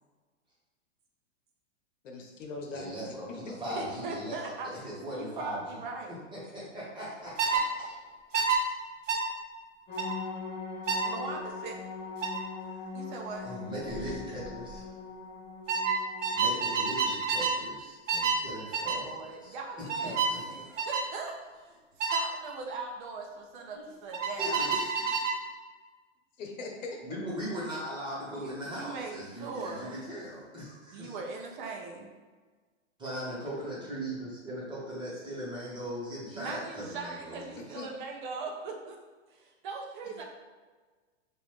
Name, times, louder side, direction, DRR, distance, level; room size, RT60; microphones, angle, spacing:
voice 1, 2.0-3.0 3.3-3.4 26.4-27.0 37.7-37.9, left 3 dB, 80° left, 2 dB, 0.9 m, -40 dB
voice 2, 2.7-3.3 3.6-4.3 4.8-5.8 6.3-7.9 12.6-12.8 13.4-14.9 16.3-20.4 23.8-23.9 24.4-25.1 27.0-31.2 33.0-37.6, equal, 10° right, -7 dB, 1.2 m, -39 dB
voice 3, 3.7-4.7 5.1-6.2 11.0-11.8 12.9-13.5 18.9-20.2 20.5-24.7 28.3-30.0 30.9-32.1 36.3-39.0 39.3-40.2, right 4 dB, 45° right, 1 dB, 0.5 m, -40 dB
sound 1, 7.4-7.6 8.3-8.6 9.1-9.3 10.0-10.2 10.9-11.1 12.2-12.4 13.9-14.1 14.4-14.8 15.7-17.6 18.1-18.4 18.7-19.0 19.9-20.4 20.8-21.1 22.0-22.3 24.1-25.4, right 5 dB, 75° right, 0.8 m, -29 dB
sound 2, 9.9-16.4, left 4 dB, 20° left, 0.8 m, -41 dB
3.9 x 2.5 x 3.2 m, 1.4 s
hypercardioid pair, 140°, 37 cm